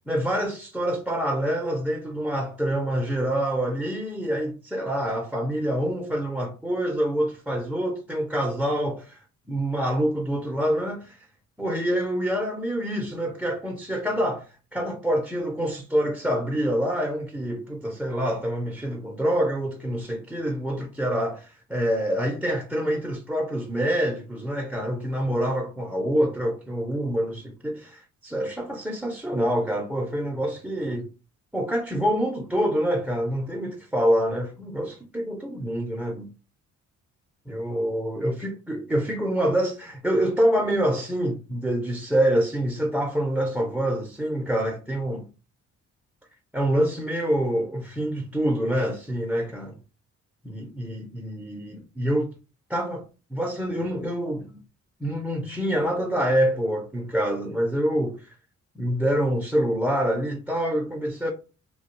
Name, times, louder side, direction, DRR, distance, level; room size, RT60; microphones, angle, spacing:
voice 1, 0.1-9.0 9.5-11.2 11.6-31.1 31.5-36.3 37.5-45.3 46.5-49.8 50.4-52.3 52.7-53.0 53.3-54.6 55.0-58.3 58.8-61.3, equal, 5° right, 0.4 m, -26 dB
2.2 x 2.1 x 2.9 m
cardioid pair, 90°, 30 cm